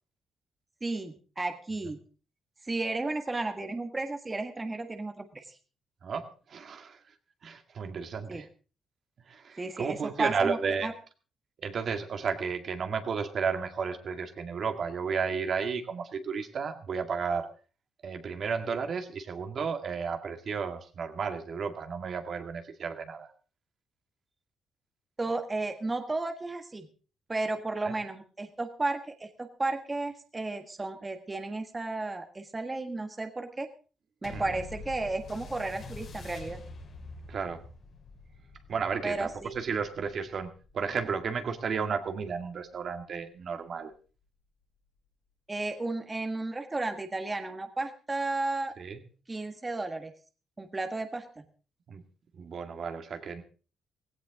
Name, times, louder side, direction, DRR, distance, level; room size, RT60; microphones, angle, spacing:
voice 1, 0.8-2.0 2.6-5.6 8.3-8.4 9.6-10.9 25.2-26.9 27.3-33.7 34.2-36.6 39.0-39.6 45.5-48.7 49.3-50.1 50.6-51.4, right 2 dB, 20° right, 6 dB, 1.5 m, -33 dB
voice 2, 6.0-7.0 7.4-8.5 9.3-10.9 11.6-17.5 18.0-23.3 27.8-27.9 34.3-34.4 37.3-37.6 38.7-43.9 48.8-49.0 51.9-52.0 52.3-53.4, right 5 dB, 55° right, 6 dB, 2.0 m, -33 dB
sound 1, 34.2-43.0 43.8-43.9, left 3 dB, 55° left, 3.6 m, -47 dB
17.0 x 16.0 x 3.7 m, 0.36 s
cardioid pair, 90°, 0 cm